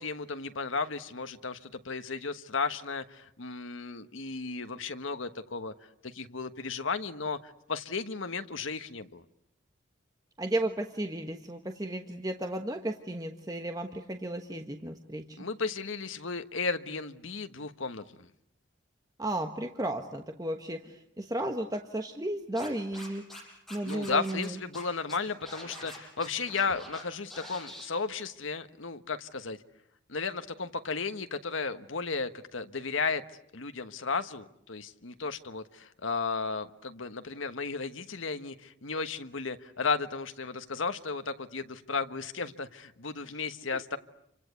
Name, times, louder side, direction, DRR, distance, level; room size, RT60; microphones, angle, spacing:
voice 1, 0.0-5.7 6.0-9.2 15.4-18.3 23.8-29.6 30.1-33.2 33.5-44.0, left 4 dB, 75° left, 9 dB, 1.3 m, -34 dB
voice 2, 10.4-15.4 19.2-23.3 23.7-24.6, right 1 dB, 20° right, 5 dB, 1.2 m, -34 dB
Scratching (performance technique), 22.5-23.4 23.7-24.5 24.7-24.8 25.1-27.0 27.3-27.9, left 1 dB, ahead, 5.6 m, -45 dB
29.0 x 25.0 x 8.2 m, 0.76 s
head